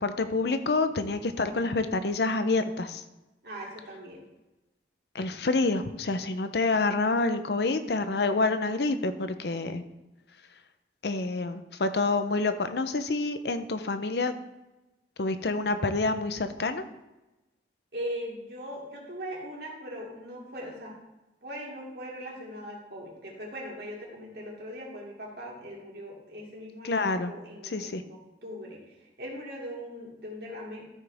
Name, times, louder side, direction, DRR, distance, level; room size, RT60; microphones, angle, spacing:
voice 1, 0.0-3.0 5.1-9.8 11.0-14.3 15.2-16.8 26.8-27.3 27.6-28.0, left 3 dB, 65° left, 10 dB, 0.7 m, -27 dB
voice 2, 3.4-4.2 17.9-20.9 21.4-30.8, equal, 60° right, -3 dB, 2.8 m, -40 dB
13.5 x 5.6 x 3.5 m, 1.0 s
head